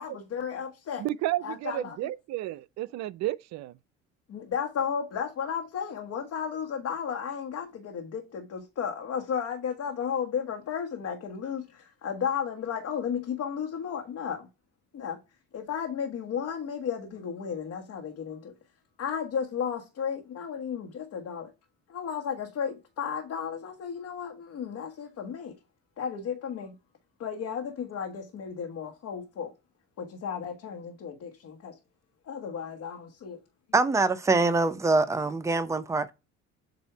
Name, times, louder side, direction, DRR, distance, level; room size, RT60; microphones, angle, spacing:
voice 1, 0.0-1.0 1.4-2.0 4.3-14.5 14.9-15.2 15.5-18.5 19.0-21.5 21.9-25.5 26.0-26.8 27.2-29.5 30.0-31.7 32.3-33.4, left 7 dB, 55° left, 1.3 m, -34 dB
voice 2, 1.0-3.8, right 15 dB, 60° right, 0.5 m, -32 dB
voice 3, 33.7-36.1, right 3 dB, 10° right, 0.7 m, -24 dB
7.9 x 2.7 x 4.5 m
supercardioid pair, 85°, 31 cm